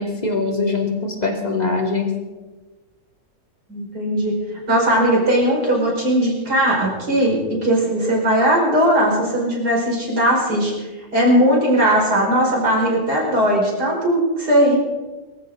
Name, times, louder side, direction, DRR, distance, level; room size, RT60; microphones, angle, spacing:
voice 1, 0.0-2.2, left 3 dB, 25° left, 1 dB, 2.7 m, -22 dB
voice 2, 3.7-4.3 4.7-10.7 11.1-14.8, equal, 80° right, -2 dB, 5.8 m, -18 dB
24.5 x 14.5 x 3.9 m, 1.2 s
omnidirectional pair, 1.7 m